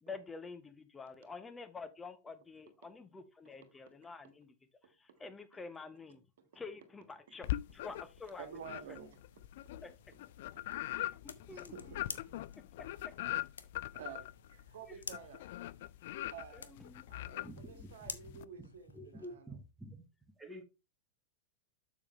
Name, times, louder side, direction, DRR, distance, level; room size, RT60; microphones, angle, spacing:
voice 1, 0.0-4.5 5.0-6.2 6.5-8.6 8.9-9.0 9.8-10.2 10.9-11.1 11.5-11.7 16.5-17.0, left 4 dB, 15° left, 1.0 m, -48 dB
sound 1, 7.4-8.2 8.6-18.4, left 15 dB, 55° left, 0.3 m, -41 dB
voice 2, 8.4-9.2 11.5-12.4 13.9-15.5 16.3-16.8 17.1-19.6, right 7 dB, 60° right, 1.6 m, -50 dB
sound 2, 9.0-19.3, left 5 dB, 70° left, 0.8 m, -52 dB
voice 3, 17.4-17.9 18.6-18.7 18.9-20.0 20.4-20.6, right 1 dB, 5° right, 1.4 m, -48 dB
7.1 x 7.0 x 3.2 m
figure-of-eight pair, 90°, 0 cm